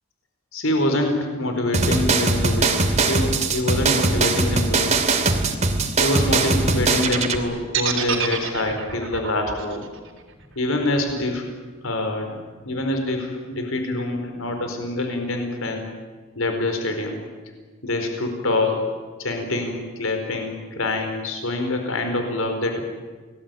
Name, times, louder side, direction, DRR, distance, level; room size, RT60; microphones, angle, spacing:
voice 1, 0.5-5.0 6.0-9.9 10.6-11.4 11.8-12.4 12.6-15.9 16.4-17.2 17.8-18.9 19.2-22.8, left 2 dB, 75° left, 5 dB, 4.5 m, -25 dB
sound 1, 1.7-7.4, right 3 dB, 35° right, 2.7 m, -21 dB
sound 2, 7.7-11.8, right 7 dB, 65° right, 4.0 m, -28 dB
29.5 x 20.5 x 9.2 m, 1.5 s
head